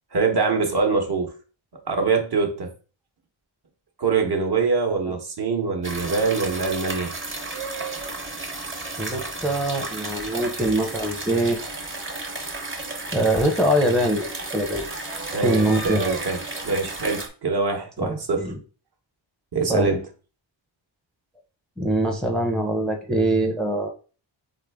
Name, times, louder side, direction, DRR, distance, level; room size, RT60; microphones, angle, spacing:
voice 1, 0.1-1.3 1.9-2.7 4.0-7.1 15.3-18.5 19.5-20.0, right 4 dB, 55° right, 1.0 m, -24 dB
sound 1, 5.8-17.3, right 2 dB, 25° right, 0.8 m, -33 dB
voice 2, 9.0-11.6 13.1-14.3 14.5-14.8 15.4-16.0 18.0-18.6 19.7-20.0 21.8-23.9, right 1 dB, ahead, 0.5 m, -23 dB
4.1 x 3.7 x 3.4 m
wide cardioid pair, 145°, 47 cm